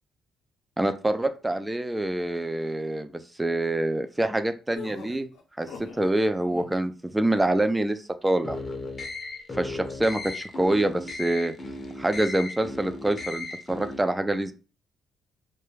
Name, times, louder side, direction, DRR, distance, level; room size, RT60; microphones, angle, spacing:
voice 1, 0.8-3.1 3.4-5.3 5.6-8.6 9.6-11.5 12.0-14.5, right 1 dB, 10° right, 9 dB, 0.3 m, -26 dB
sound 1, 4.7-6.1 6.4-6.9, left 5 dB, 85° left, 0.6 m, -42 dB
sound 2, 8.4-14.0, left 2 dB, 35° left, 0.5 m, -36 dB
2.3 x 2.1 x 3.1 m, 0.34 s
cardioid pair, 90°, 0 cm